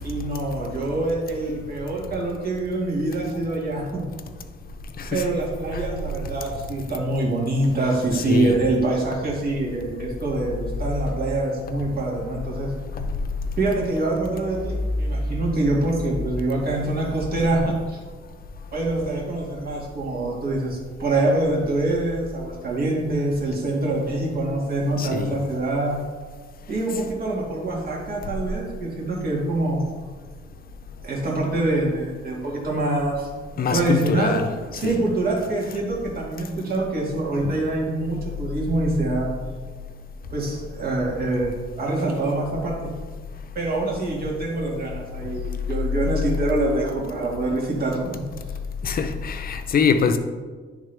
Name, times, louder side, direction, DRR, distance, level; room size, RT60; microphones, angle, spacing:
voice 1, 0.0-4.0 5.1-12.7 13.6-18.0 18.7-26.0 26.7-29.8 31.0-33.3 33.7-34.4 34.7-39.3 40.3-42.9 43.6-48.0, right 2 dB, 50° right, 2.0 m, -25 dB
voice 2, 5.0-5.3 5.7-5.8 8.1-8.6 12.9-13.0 25.0-25.4 33.6-35.0 37.4-37.6 48.8-50.2, left 6 dB, 50° left, 0.6 m, -24 dB
10.0 x 3.6 x 3.4 m
cardioid pair, 90°, 20 cm